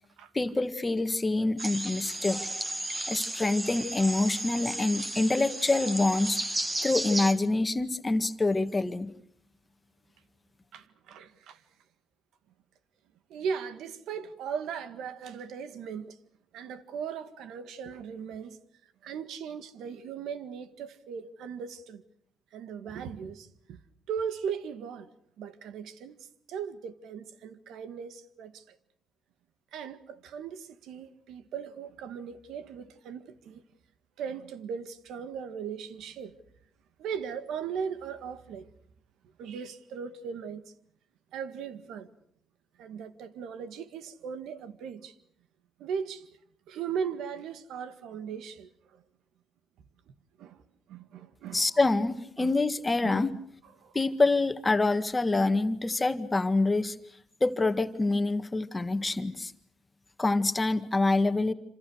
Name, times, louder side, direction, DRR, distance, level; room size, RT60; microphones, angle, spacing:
voice 1, 0.3-2.5 3.1-6.4 6.8-9.1 51.5-53.3 54.0-57.0 57.4-59.5 60.2-61.5, left 2 dB, 20° left, 1.7 m, -26 dB
sound 1, 1.6-7.3, right 1 dB, 15° right, 2.3 m, -34 dB
voice 2, 10.7-11.6 13.3-16.2 16.5-18.6 19.0-22.0 22.5-23.8 24.1-25.1 25.4-28.8 29.7-33.6 34.2-36.4 37.0-38.7 39.4-40.7 41.3-42.1 42.8-45.2 45.8-46.3 46.7-49.0 50.1-50.6 50.9-51.6 52.4-52.5 53.0-53.2 53.8-54.0, right 7 dB, 85° right, 1.8 m, -38 dB
27.5 x 27.0 x 6.4 m
cardioid pair, 90°, 0 cm